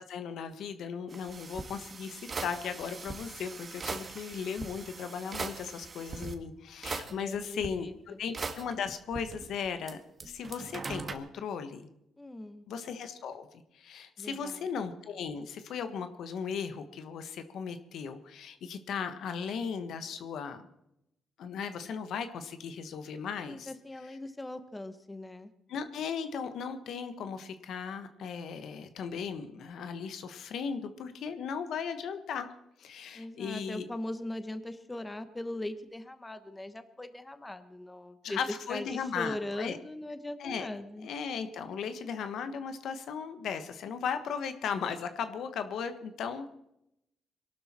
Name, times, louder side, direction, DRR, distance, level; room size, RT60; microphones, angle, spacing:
voice 1, 0.0-10.0 10.2-11.9 12.7-13.5 13.7-20.7 21.4-23.7 25.7-32.5 32.8-33.8 38.2-39.8 40.4-40.7 41.0-46.5, left 6 dB, 70° left, 9 dB, 1.4 m, -37 dB
sound 1, 1.1-6.3 6.8-7.7 8.3-9.9 10.2-11.2, right 4 dB, 35° right, 1.7 m, -40 dB
voice 2, 7.1-8.2 12.2-12.6 14.2-14.7 23.4-25.5 33.1-38.4 38.7-41.1, left 1 dB, 15° left, 10 dB, 1.4 m, -40 dB
22.5 x 12.0 x 4.4 m, 0.82 s
cardioid pair, 90°, 0 cm